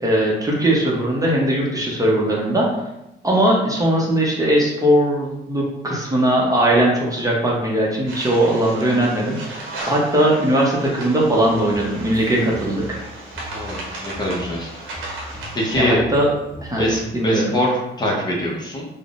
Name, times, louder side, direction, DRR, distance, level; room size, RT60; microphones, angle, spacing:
voice 1, 0.0-2.7 3.2-13.0 15.8-16.3 16.6-16.8 17.1-17.5, right 1 dB, 15° right, -3 dB, 0.6 m, -19 dB
sound 1, 8.1-15.8, right 2 dB, 85° right, 0.7 m, -35 dB
sound 2, 11.7-17.2, equal, 5° left, 1.2 m, -39 dB
voice 2, 13.5-14.8 15.5-16.0 16.8-18.9, equal, 20° left, -3 dB, 0.7 m, -23 dB
3.5 x 2.0 x 2.4 m, 0.90 s
cardioid pair, 90°, 20 cm